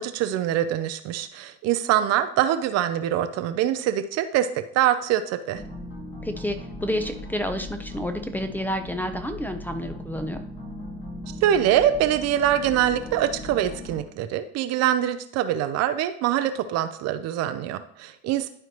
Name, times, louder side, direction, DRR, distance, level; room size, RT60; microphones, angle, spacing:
voice 1, 0.0-5.6 11.4-18.5, right 11 dB, 50° right, 9 dB, 0.7 m, -24 dB
sound 1, 5.5-14.0, left 1 dB, 25° left, 1.9 m, -38 dB
voice 2, 6.2-10.4, equal, 5° left, 7 dB, 0.7 m, -30 dB
12.0 x 4.5 x 3.0 m, 0.66 s
hypercardioid pair, 75°, 32 cm